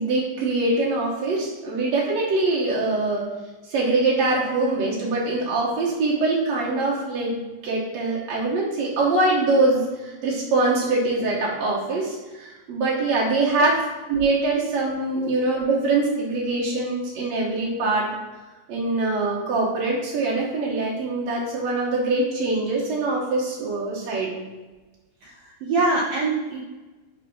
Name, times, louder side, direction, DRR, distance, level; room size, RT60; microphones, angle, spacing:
voice 1, 0.0-3.2 3.7-13.7 14.1-18.0 18.7-24.3, right 2 dB, 70° right, -5 dB, 1.6 m, -23 dB
voice 2, 25.2-26.6, right 3 dB, 85° right, -3 dB, 2.0 m, -24 dB
9.1 x 3.4 x 5.5 m, 1.2 s
omnidirectional pair, 5.2 m